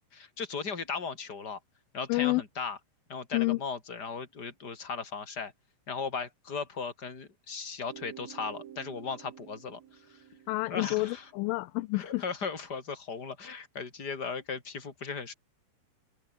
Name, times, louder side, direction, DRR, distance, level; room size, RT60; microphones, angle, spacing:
voice 1, 0.1-1.6 1.9-2.8 3.1-5.5 5.9-10.2 10.7-11.2 11.9-15.3, left 5 dB, 20° left, 4.1 m, -37 dB
voice 2, 2.1-2.4 3.3-3.6 10.5-12.2, left 21 dB, 85° left, 3.1 m, -29 dB
sound 1, 7.9-11.5, right 10 dB, 85° right, 5.3 m, -50 dB
omnidirectional pair, 5.7 m